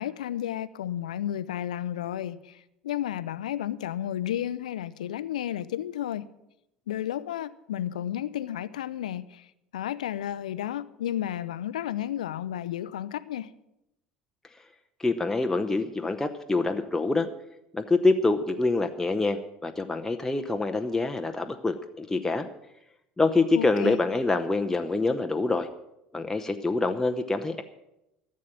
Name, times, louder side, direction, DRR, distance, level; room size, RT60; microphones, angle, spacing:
voice 1, 0.0-6.3 6.9-13.5 23.5-24.0, left 11 dB, 75° left, 0.5 m, -32 dB
voice 2, 15.0-17.3 17.7-22.5 23.2-25.7 26.1-27.6, left 3 dB, 10° left, 0.8 m, -26 dB
14.0 x 7.5 x 8.6 m
figure-of-eight pair, 65°, 4 cm